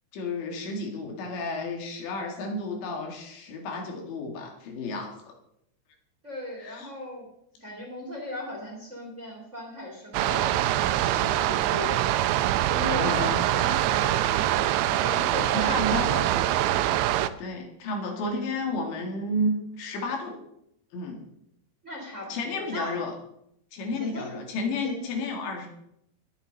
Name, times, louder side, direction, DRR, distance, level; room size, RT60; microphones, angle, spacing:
voice 1, 0.1-5.3 6.6-6.9 13.0-13.3 15.5-16.1 17.4-20.4 20.9-21.2 22.3-23.1 23.7-25.7, left 2 dB, 70° left, 2 dB, 4.3 m, -31 dB
voice 2, 6.2-7.3 7.6-12.0 12.7-16.8 21.8-23.0 24.0-24.5 24.8-25.0, left 1 dB, 20° right, -2 dB, 3.0 m, -38 dB
sound 1, 10.1-17.3, right 13 dB, 80° right, 2.9 m, -24 dB
21.5 x 8.8 x 4.1 m, 0.76 s
omnidirectional pair, 5.4 m